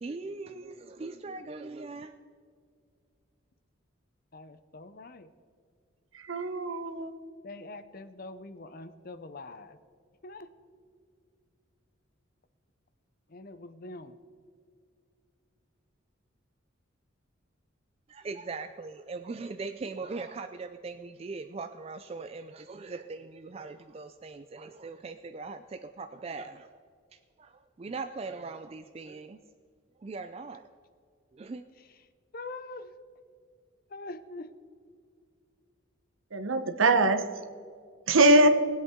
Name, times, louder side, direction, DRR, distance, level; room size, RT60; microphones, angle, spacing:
voice 1, 0.0-2.2 18.1-26.8 27.1-29.4 30.0-30.6 31.3-31.6, right 3 dB, 30° right, 8 dB, 0.3 m, -40 dB
voice 2, 4.3-5.3 7.4-9.8 10.2-10.5 13.3-14.2 32.3-32.9 33.9-34.5, left 2 dB, 45° left, 11 dB, 0.6 m, -43 dB
voice 3, 6.1-7.1 36.3-37.3 38.1-38.5, right 2 dB, 80° right, 9 dB, 0.9 m, -22 dB
20.0 x 8.0 x 3.7 m, 2.2 s
head